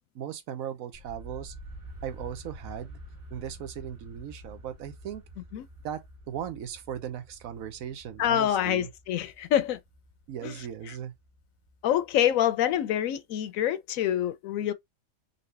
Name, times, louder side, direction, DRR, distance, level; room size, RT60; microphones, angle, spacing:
voice 1, 0.1-1.5 2.0-3.0 3.3-5.2 5.8-6.0 6.3-8.9 10.3-11.1, right 9 dB, 85° right, 1.1 m, -37 dB
sound 1, 0.9-12.8, equal, 40° right, 1.9 m, -48 dB
voice 2, 8.2-9.8 10.4-10.5 11.8-14.7, left 11 dB, 80° left, 1.0 m, -26 dB
4.0 x 2.8 x 3.2 m
omnidirectional pair, 1.4 m